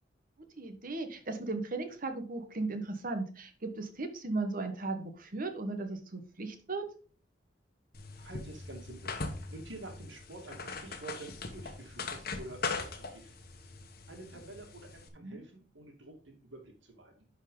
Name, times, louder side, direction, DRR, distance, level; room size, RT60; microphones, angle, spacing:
voice 1, 0.6-6.9 15.2-15.4, right 3 dB, 50° right, 7 dB, 1.2 m, -36 dB
sound 1, 7.9-15.1, left 4 dB, 55° left, 1.2 m, -41 dB
voice 2, 8.2-9.1 9.5-13.3 14.1-17.3, right 2 dB, 85° right, 2 dB, 2.3 m, -48 dB
10.5 x 4.6 x 3.8 m, 0.40 s
head